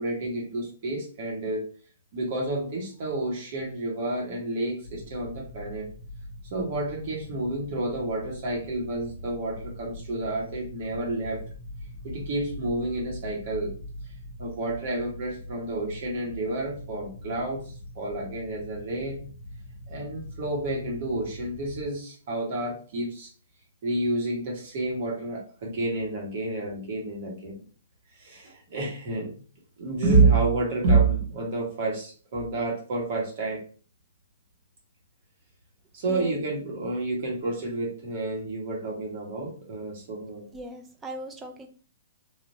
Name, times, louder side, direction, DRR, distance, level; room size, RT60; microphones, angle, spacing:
voice 1, 0.0-1.7 2.1-5.9 6.5-11.5 12.0-13.7 14.4-19.2 19.9-23.3 23.8-27.6 28.2-29.3 29.8-33.6 35.9-40.5, right 2 dB, 50° right, -2 dB, 1.3 m, -29 dB
sound 1, 4.8-21.9, left 1 dB, 30° left, 0.9 m, -42 dB
voice 2, 40.5-41.7, equal, 15° right, 4 dB, 0.5 m, -38 dB
3.4 x 2.5 x 2.7 m, 0.39 s
hypercardioid pair, 145°, 0 cm